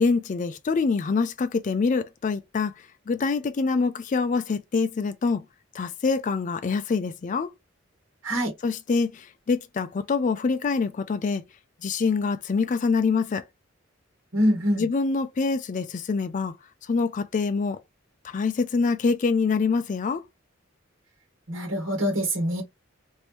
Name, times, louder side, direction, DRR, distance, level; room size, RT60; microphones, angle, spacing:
voice 1, 0.0-5.4 5.7-7.5 8.6-11.4 11.8-13.4 14.8-16.5 16.8-17.8 18.2-20.2, left 4 dB, 40° left, 0.4 m, -25 dB
voice 2, 14.3-14.8 21.5-22.6, equal, 85° right, 1.2 m, -24 dB
3.0 x 2.7 x 3.2 m
head